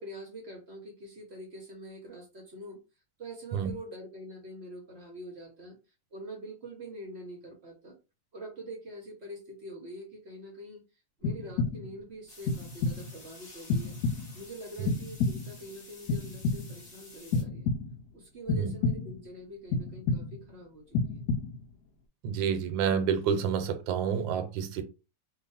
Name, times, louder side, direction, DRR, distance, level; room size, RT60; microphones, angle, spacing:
voice 1, 0.0-2.8 3.2-5.8 6.1-8.0 8.3-10.8 11.2-14.0 14.3-17.7 18.1-21.2, right 1 dB, 50° right, 0.8 m, -45 dB
sound 1, 11.2-12.0 12.5-13.2 13.7-14.5 14.9-15.7 16.1-16.9 17.3-18.1 18.5-19.3 19.7-20.5 20.9-21.7, left 3 dB, 70° left, 1.0 m, -31 dB
sound 2, 12.3-17.4, left 2 dB, 25° left, 1.1 m, -52 dB
voice 2, 22.2-24.8, right 7 dB, 80° right, 1.3 m, -29 dB
3.0 x 2.3 x 4.1 m
omnidirectional pair, 2.0 m